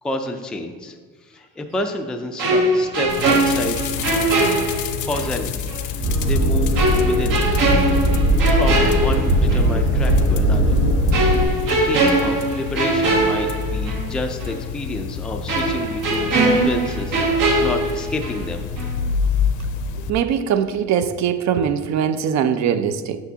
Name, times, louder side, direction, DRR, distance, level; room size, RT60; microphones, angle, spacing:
voice 1, 0.0-3.8 5.1-7.5 8.5-10.8 11.6-18.7, left 1 dB, 5° left, 3 dB, 0.4 m, -29 dB
sound 1, 2.4-5.3 5.7-5.8 6.8-9.7 10.0-10.2 11.1-14.1 14.4-14.5 15.5-18.5 18.8-19.0, right 2 dB, 80° right, 2.0 m, -21 dB
sound 2, 3.1-20.1, left 6 dB, 65° left, 0.6 m, -28 dB
sound 3, 6.0-11.4, right 1 dB, 40° right, 1.7 m, -19 dB
voice 2, 20.1-23.2, right 8 dB, 60° right, 11 dB, 0.5 m, -21 dB
8.3 x 6.8 x 2.8 m, 1.4 s
cardioid pair, 140°, 33 cm